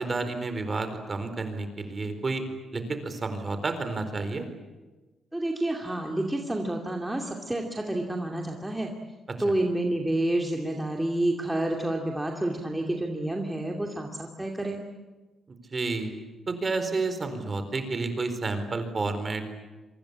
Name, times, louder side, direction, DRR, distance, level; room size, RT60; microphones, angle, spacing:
voice 1, 0.0-2.4 2.7-4.5 15.7-16.1 16.5-19.4, right 3 dB, 30° right, 8 dB, 4.3 m, -30 dB
voice 2, 5.3-8.9 9.4-14.8, right 1 dB, 10° right, 1 dB, 2.5 m, -29 dB
28.0 x 24.5 x 8.5 m, 1.2 s
cardioid pair, 135°, 0 cm